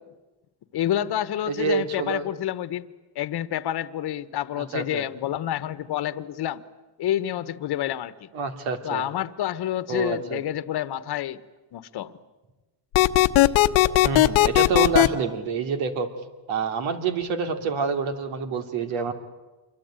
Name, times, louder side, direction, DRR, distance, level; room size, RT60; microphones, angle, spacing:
voice 1, 0.7-2.9 3.1-6.6 7.0-8.3 8.8-11.4 11.7-12.1, left 12 dB, 55° left, 15 dB, 1.3 m, -28 dB
voice 2, 1.5-2.3 4.6-5.1 8.3-9.1 9.9-10.4 14.0-16.1 16.5-19.1, right 5 dB, 80° right, 6 dB, 3.0 m, -27 dB
sound 1, 12.9-15.1, left 17 dB, 75° left, 1.1 m, -17 dB
27.0 x 23.5 x 9.0 m, 1.1 s
cardioid pair, 100°, 47 cm